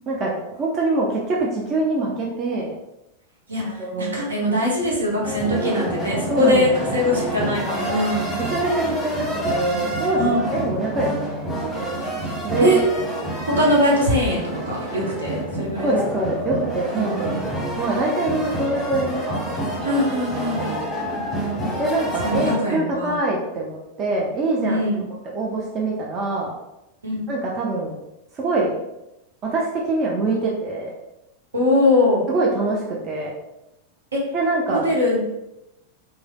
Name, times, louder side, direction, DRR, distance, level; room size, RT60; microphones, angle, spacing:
voice 1, 0.1-2.7 3.6-4.2 6.3-6.9 8.4-12.0 12.4-12.8 15.8-19.6 19.8-20.0 20.6-20.9 21.8-24.8 25.3-26.5 27.3-27.9 28.4-28.7 29.4-30.9 32.3-33.3 34.3-34.8, right 2 dB, 30° right, -2 dB, 0.5 m, -24 dB
voice 2, 3.5-8.3 10.1-10.5 12.6-12.8 13.5-16.0 16.9-17.4 19.8-20.7 22.2-23.2 24.6-25.0 27.0-27.2 31.5-32.2 34.1-34.2 34.7-35.2, left 1 dB, 75° right, -4 dB, 0.9 m, -21 dB
sound 1, 5.2-22.5, right 1 dB, 5° left, 1.0 m, -28 dB
3.2 x 2.7 x 2.2 m, 0.91 s
figure-of-eight pair, 90°, 0 cm